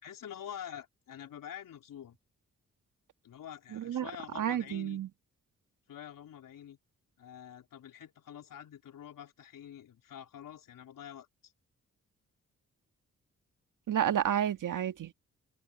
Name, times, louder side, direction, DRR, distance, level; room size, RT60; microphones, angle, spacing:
voice 1, 0.0-2.2 3.2-5.0 5.9-6.8 7.2-11.5, left 9 dB, 75° left, 4.1 m, -47 dB
voice 2, 3.7-4.1 4.4-5.1 13.9-15.1, right 10 dB, 70° right, 1.9 m, -30 dB
open air
supercardioid pair, 50°, 33 cm